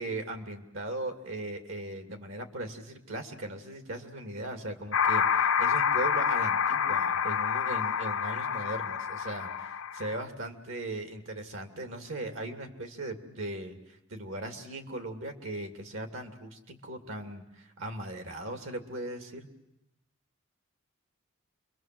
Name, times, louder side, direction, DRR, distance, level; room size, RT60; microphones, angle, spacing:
voice 1, 0.0-19.5, right 1 dB, 70° right, 6 dB, 2.7 m, -38 dB
sound 1, 4.9-10.2, left 7 dB, 80° left, 0.9 m, -28 dB
29.0 x 23.0 x 7.7 m, 0.88 s
head